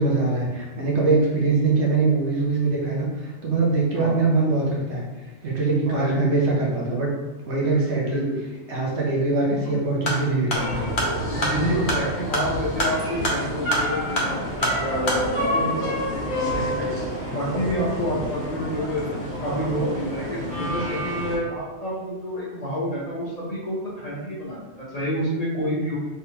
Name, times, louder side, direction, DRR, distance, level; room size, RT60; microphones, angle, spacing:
voice 1, 0.0-5.0 5.4-7.1 7.4-8.3 8.7-10.9, right 3 dB, 65° right, -3 dB, 1.0 m, -22 dB
voice 2, 5.9-6.2 8.0-8.4 11.2-16.9 17.2-26.0, equal, 40° left, -7 dB, 0.7 m, -29 dB
sound 1, 10.0-15.2, equal, 60° left, 1.0 m, -27 dB
sound 2, 10.5-21.4, equal, 10° left, 1.3 m, -28 dB
3.4 x 3.0 x 2.8 m, 1.2 s
omnidirectional pair, 1.3 m